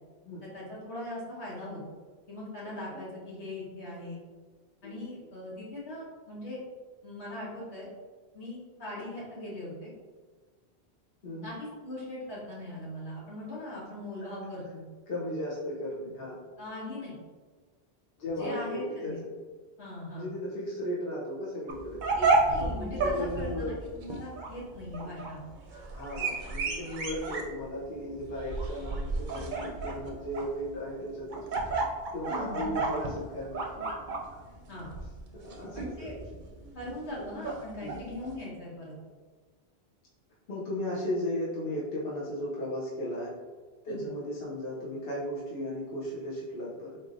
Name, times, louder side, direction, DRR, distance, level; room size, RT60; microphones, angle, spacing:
voice 1, 0.4-1.8 2.3-4.2 4.8-6.6 7.0-7.9 8.3-9.9 11.4-14.8 16.6-17.1 18.3-19.2 19.8-20.3 22.2-25.4 32.3-32.8 34.7-34.9 35.7-36.1 36.7-38.9 43.9-44.0, left 1 dB, 80° left, -7 dB, 1.6 m, -40 dB
voice 2, 2.6-3.0 4.8-4.9 11.2-11.5 15.1-16.4 18.2-19.2 20.1-22.0 22.5-23.8 25.0-25.1 25.9-31.4 32.1-34.4 35.3-36.1 37.8-38.0 40.5-43.3 43.8-47.0, left 1 dB, 65° left, -7 dB, 1.0 m, -36 dB
sound 1, 21.7-38.3, right 3 dB, 55° right, 0.6 m, -32 dB
3.9 x 3.2 x 2.5 m, 1.4 s
omnidirectional pair, 1.1 m